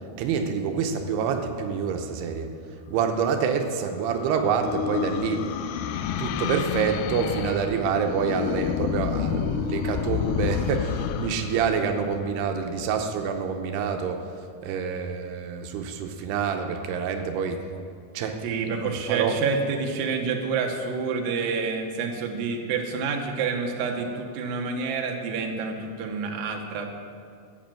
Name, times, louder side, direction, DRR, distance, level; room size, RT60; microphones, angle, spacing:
voice 1, 0.2-2.5 2.9-5.5 6.2-14.3 14.6-17.6 18.1-18.4 18.7-19.4, right 6 dB, 85° right, 5 dB, 2.9 m, -27 dB
sound 1, 3.3-12.9, left 8 dB, 85° left, 2.6 m, -30 dB
voice 2, 18.4-26.9, right 5 dB, 70° right, 2 dB, 2.6 m, -28 dB
14.0 x 8.0 x 7.6 m, 2.3 s
omnidirectional pair, 4.6 m